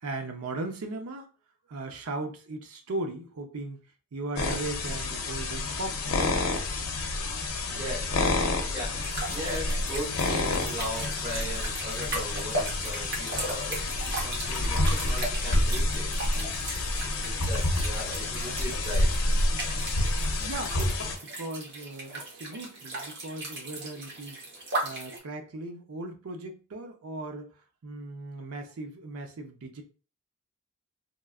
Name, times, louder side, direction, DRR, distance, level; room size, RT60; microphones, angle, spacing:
voice 1, 0.0-1.3 1.7-3.8 4.1-6.2 20.4-20.8 21.3-24.4 24.8-27.5 27.8-29.8, right 2 dB, 80° right, 0.6 m, -37 dB
sound 1, 4.4-21.2, left 2 dB, 75° left, 0.6 m, -29 dB
voice 2, 7.7-16.9 17.2-19.1, equal, 25° right, 1.0 m, -39 dB
sound 2, 9.0-25.2, right 2 dB, 55° right, 1.0 m, -38 dB
3.0 x 2.3 x 2.3 m
head